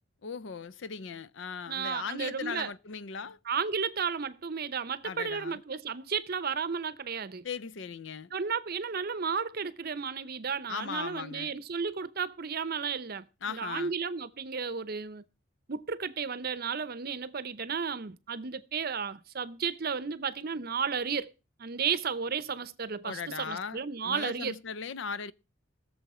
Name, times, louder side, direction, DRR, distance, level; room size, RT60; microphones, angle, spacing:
voice 1, 0.2-3.4 5.0-5.6 7.4-8.3 10.7-11.6 13.4-13.9 23.0-25.3, left 6 dB, 65° left, 0.5 m, -38 dB
voice 2, 1.7-2.7 3.5-7.4 8.3-15.2 15.7-21.3 21.6-24.5, right 6 dB, 50° right, 0.7 m, -33 dB
19.5 x 7.1 x 4.3 m
head